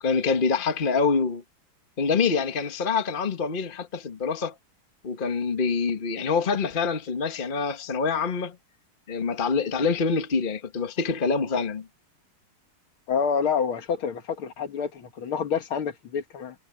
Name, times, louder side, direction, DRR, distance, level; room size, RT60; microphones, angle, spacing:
voice 1, 0.0-1.4 2.0-4.5 5.0-8.6 9.1-11.9, left 5 dB, 25° left, 1.4 m, -25 dB
voice 2, 13.1-16.6, left 6 dB, 70° left, 2.4 m, -28 dB
omnidirectional pair, 2.4 m